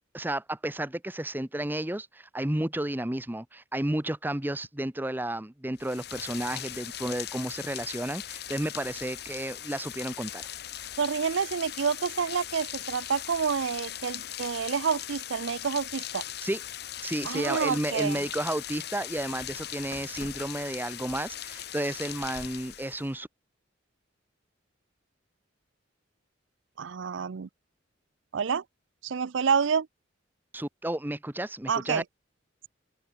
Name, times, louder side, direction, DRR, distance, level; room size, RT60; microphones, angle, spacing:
voice 1, 0.1-10.5 16.4-16.6 17.0-23.3 30.5-32.0, right 1 dB, 10° right, 0.8 m, -32 dB
Rain, 5.8-23.2, left 11 dB, 55° left, 1.4 m, -39 dB
voice 2, 11.0-16.2 17.2-18.2 26.8-27.5 28.3-28.6 29.0-29.9 31.7-32.0, right 6 dB, 70° right, 0.5 m, -28 dB
open air
head